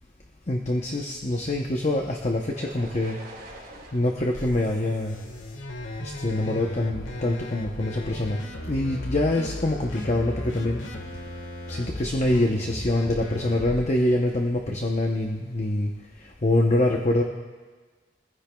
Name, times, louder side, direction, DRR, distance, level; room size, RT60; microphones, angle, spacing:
voice 1, 0.5-3.2 3.9-5.2 6.0-8.4 8.7-10.8 11.7-15.9 16.4-17.2, left 1 dB, 35° left, 1 dB, 0.8 m, -25 dB
sound 1, 2.5-6.4, right 2 dB, 45° right, 3.3 m, -46 dB
sound 2, 4.3-13.8, left 1 dB, 85° left, 1.5 m, -36 dB
24.0 x 15.0 x 2.3 m, 1.4 s
head